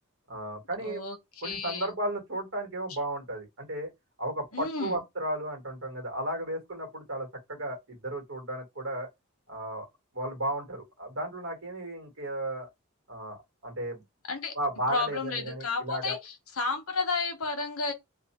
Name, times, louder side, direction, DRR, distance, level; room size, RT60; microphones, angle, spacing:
voice 1, 0.3-1.0 1.4-3.9 4.2-9.1 9.5-9.9 10.1-12.7 13.1-14.0 14.5-16.2, right 1 dB, 60° right, 1.5 m, -34 dB
voice 2, 0.8-1.2 1.4-1.9 4.5-5.0 14.3-14.5 14.9-16.2 16.6-17.9, left 4 dB, 85° left, 1.0 m, -31 dB
2.7 x 2.5 x 4.2 m
head